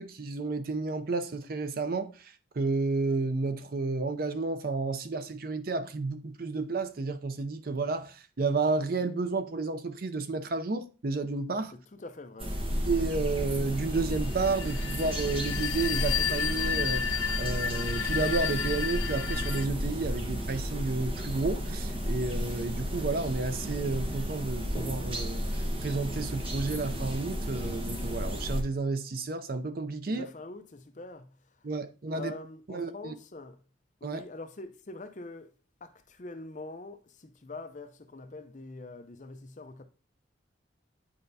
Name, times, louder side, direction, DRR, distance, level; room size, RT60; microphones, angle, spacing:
voice 1, 0.0-11.7 12.9-25.4 25.8-30.3 31.6-32.3 32.7-33.1 34.0-34.2, right 3 dB, 50° right, 0.5 m, -31 dB
voice 2, 12.0-12.5 30.0-31.7 32.1-33.6 34.0-35.5 35.8-39.8, left 2 dB, 40° left, 0.6 m, -44 dB
sound 1, 12.4-28.6, equal, 30° right, 1.0 m, -33 dB
sound 2, 14.3-19.7, left 8 dB, 85° left, 0.5 m, -32 dB
8.6 x 4.4 x 2.7 m
head